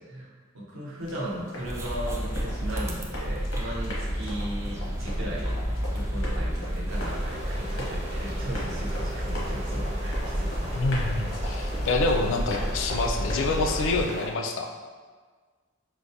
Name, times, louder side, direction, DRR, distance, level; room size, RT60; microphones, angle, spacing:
voice 1, 0.5-5.6 5.9-10.9, right 1 dB, 65° right, -4 dB, 0.8 m, -37 dB
Run, 1.0-14.3, left 1 dB, 85° left, 0.9 m, -40 dB
sound 1, 1.6-14.1, equal, 15° right, 0.3 m, -31 dB
sound 2, 6.9-14.3, right 1 dB, 30° right, 0.8 m, -40 dB
voice 2, 10.7-14.7, left 3 dB, 65° left, 3 dB, 0.4 m, -27 dB
4.6 x 2.1 x 2.6 m, 1.5 s
head